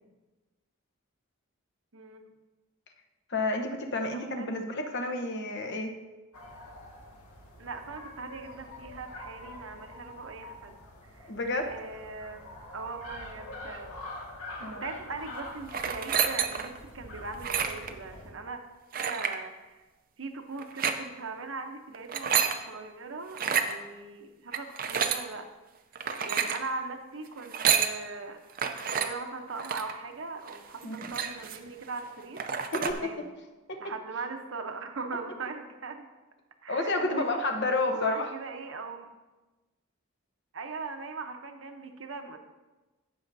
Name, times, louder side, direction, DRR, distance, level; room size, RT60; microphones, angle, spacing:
voice 1, 1.9-2.3 4.1-4.6 7.6-10.8 11.0-11.3 11.7-12.4 12.7-14.1 14.7-18.6 18.9-19.8 20.2-22.4 22.7-25.5 26.2-28.4 28.9-32.4 32.9-33.2 33.8-36.1 36.6-37.4 37.9-39.1 40.5-42.4, right 4 dB, 60° right, 5 dB, 0.9 m, -40 dB
voice 2, 3.3-5.9 11.3-11.7 14.6-14.9 30.8-31.1 32.7-33.1 33.7-33.8 36.7-38.3, left 2 dB, 50° left, 5 dB, 0.9 m, -30 dB
sound 1, 6.3-18.3, left 2 dB, 85° left, 1.8 m, -45 dB
sound 2, 15.7-16.8 17.3-17.9 18.9-19.4 20.6-21.0 21.9-22.6 23.3-23.7 24.5-25.2 26.0-26.6 27.4-27.9 28.6-29.1 29.6-29.9 30.5-30.6 30.8-31.7 32.1-32.2 32.4-32.9, right 7 dB, 40° right, 0.5 m, -29 dB
15.5 x 6.3 x 2.7 m, 1.2 s
head